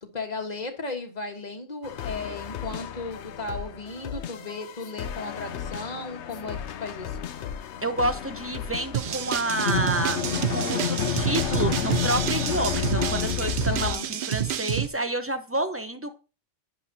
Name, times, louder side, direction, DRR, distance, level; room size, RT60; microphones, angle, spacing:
voice 1, 0.0-7.2 13.7-14.1, left 3 dB, 35° left, 4 dB, 1.6 m, -35 dB
sound 1, 1.8-13.9, left 10 dB, 70° left, 0.9 m, -34 dB
voice 2, 7.8-16.2, right 1 dB, 15° right, 8 dB, 0.7 m, -29 dB
sound 2, 8.9-14.9, right 10 dB, 55° right, 0.7 m, -29 dB
Bowed string instrument, 9.5-13.8, left 8 dB, 85° left, 1.2 m, -30 dB
11.0 x 10.0 x 2.8 m, 0.32 s
omnidirectional pair, 1.2 m